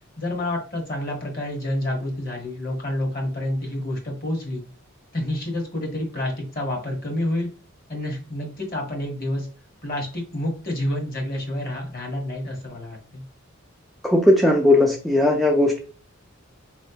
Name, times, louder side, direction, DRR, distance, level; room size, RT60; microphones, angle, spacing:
voice 1, 0.2-4.6 5.1-7.5 7.9-9.5 9.8-13.2, left 1 dB, 45° left, 0 dB, 1.3 m, -28 dB
voice 2, 14.0-15.8, left 1 dB, ahead, 1 dB, 0.3 m, -17 dB
4.0 x 3.2 x 2.8 m, 0.37 s
head